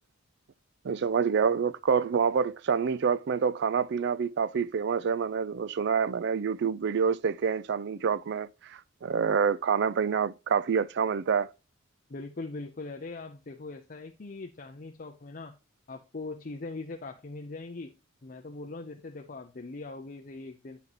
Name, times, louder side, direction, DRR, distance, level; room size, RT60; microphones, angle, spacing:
voice 1, 0.8-8.5 9.0-11.5, right 6 dB, 55° right, 0.4 m, -27 dB
voice 2, 12.1-15.6 15.9-18.0 18.2-20.8, left 3 dB, 40° left, 0.6 m, -41 dB
9.2 x 5.8 x 2.9 m
head